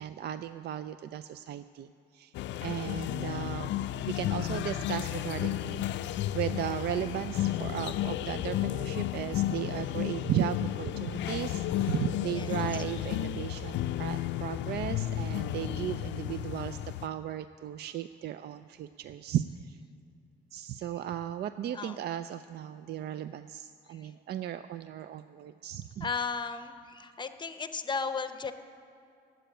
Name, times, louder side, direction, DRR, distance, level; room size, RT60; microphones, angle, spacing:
voice 1, 0.0-2.3 2.6-19.8 20.5-26.1, right 11 dB, 60° right, 12 dB, 0.4 m, -36 dB
sound 1, 2.3-17.1, left 12 dB, 75° left, 0.4 m, -33 dB
voice 2, 26.0-28.5, left 5 dB, 25° left, 9 dB, 0.7 m, -35 dB
13.5 x 7.8 x 9.2 m, 2.5 s
cardioid pair, 125°, 19 cm